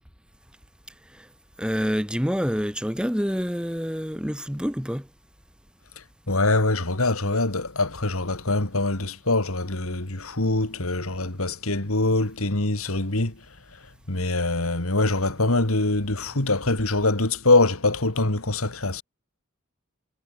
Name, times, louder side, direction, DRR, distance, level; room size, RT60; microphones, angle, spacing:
voice 1, 1.6-5.1, equal, 5° right, 2.9 m, -27 dB
voice 2, 6.3-13.4 14.1-19.0, left 2 dB, 85° left, 2.8 m, -24 dB
head